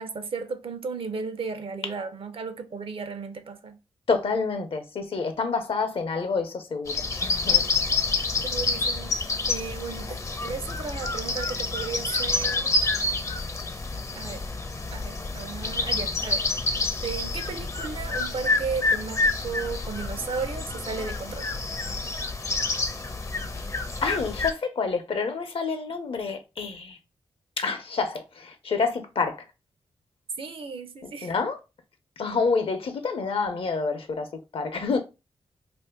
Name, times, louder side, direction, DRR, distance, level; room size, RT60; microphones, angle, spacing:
voice 1, 0.0-3.8 8.4-9.2 9.5-12.8 14.1-14.4 14.9-16.5 17.0-21.5 30.4-31.3, right 5 dB, 65° right, 0.6 m, -34 dB
voice 2, 4.1-6.9 7.2-7.6 24.0-27.0 27.6-29.4 31.0-31.6 32.2-35.0, left 4 dB, 70° left, 0.7 m, -28 dB
sound 1, 6.9-24.5, left 3 dB, 30° left, 0.5 m, -28 dB
2.7 x 2.5 x 3.6 m
cardioid pair, 60°, 10 cm